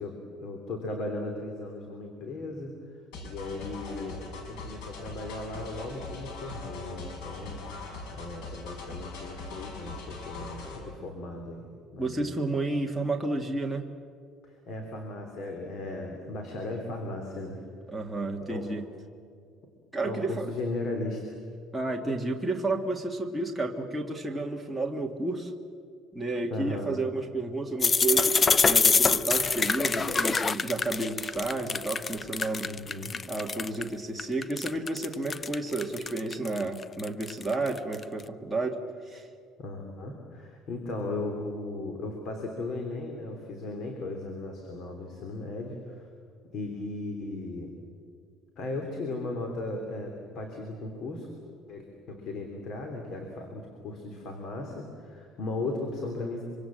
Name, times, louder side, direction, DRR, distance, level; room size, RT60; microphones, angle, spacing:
voice 1, 0.0-2.7 3.2-7.7 8.1-11.7 11.9-12.4 14.4-17.6 18.4-18.7 20.0-21.4 26.5-27.0 29.6-29.7 32.6-33.1 39.6-46.1 46.5-47.7 48.6-56.4, left 2 dB, 45° left, 3 dB, 3.4 m, -36 dB
sound 1, 3.1-10.8, left 3 dB, 90° left, 5.9 m, -41 dB
voice 2, 12.0-13.9 17.9-18.8 19.9-20.5 21.7-25.5 26.1-32.7 33.3-39.3, right 2 dB, 5° right, -1 dB, 1.8 m, -31 dB
sound 2, 27.8-33.8 34.2-38.0, left 5 dB, 20° left, 0.5 m, -25 dB
25.0 x 25.0 x 7.7 m, 2.3 s
cardioid pair, 155°, 0 cm